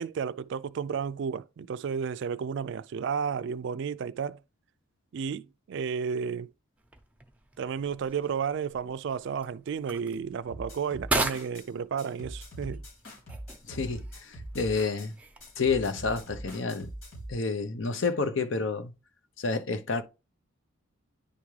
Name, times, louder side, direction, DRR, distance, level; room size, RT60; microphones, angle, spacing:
voice 1, 0.0-4.4 5.1-6.5 7.6-12.8, right 6 dB, 55° right, 0.3 m, -32 dB
sound 1, 6.8-16.0, right 2 dB, 5° right, 0.8 m, -39 dB
sound 2, 10.5-11.7 12.0-15.1 15.4-17.3, right 1 dB, 75° left, 4.5 m, -42 dB
voice 2, 13.7-15.1 15.6-16.9 17.3-18.9 19.4-20.0, left 4 dB, 60° left, 0.7 m, -29 dB
9.9 x 3.6 x 3.2 m
head